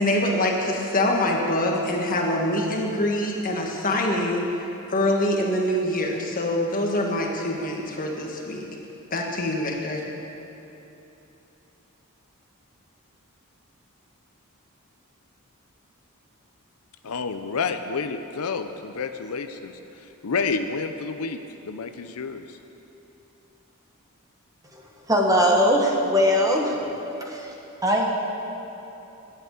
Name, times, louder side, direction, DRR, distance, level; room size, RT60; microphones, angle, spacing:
voice 1, 0.0-4.5 4.9-8.7 9.1-10.0, left 1 dB, 40° left, 0 dB, 1.6 m, -24 dB
voice 2, 17.0-22.6, left 4 dB, 85° left, 8 dB, 0.6 m, -30 dB
voice 3, 25.1-26.7 27.3-27.5 27.8-28.0, equal, 15° right, 0 dB, 1.4 m, -20 dB
11.0 x 8.1 x 8.6 m, 3.0 s
head